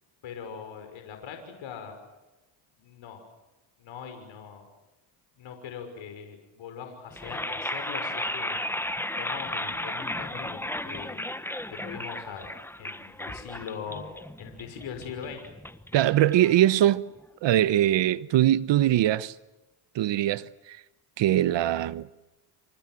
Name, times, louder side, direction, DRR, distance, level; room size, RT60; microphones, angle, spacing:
voice 1, 0.2-1.9 2.8-3.2 3.8-4.6 5.4-8.6 9.2-10.6 10.8-11.2 11.7-12.5 12.8-14.0 14.4-15.5, left 7 dB, 65° left, 6.0 m, -41 dB
sound 1, 7.1-17.2, left 1 dB, 5° left, 1.3 m, -35 dB
voice 2, 15.9-17.0 17.4-19.3 19.9-20.8 21.2-22.1, right 13 dB, 60° right, 1.1 m, -22 dB
27.5 x 26.5 x 7.7 m
supercardioid pair, 85°, 49 cm